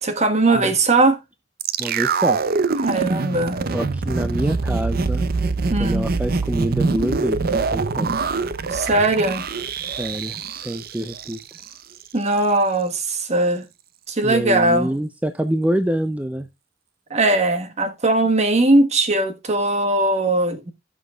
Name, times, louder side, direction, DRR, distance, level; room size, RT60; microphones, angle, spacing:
voice 1, 0.0-1.2 2.8-3.6 5.7-6.1 8.7-9.5 12.1-13.7 14.1-14.9 17.1-20.7, right 2 dB, 35° right, 1.3 m, -19 dB
sound 1, 1.6-11.7 12.0-12.1, right 4 dB, 50° right, 0.6 m, -24 dB
voice 2, 1.8-2.4 3.7-5.3 5.8-8.2 10.0-11.4 14.2-16.5, right 1 dB, 10° right, 0.5 m, -26 dB
16.0 x 6.2 x 2.3 m
head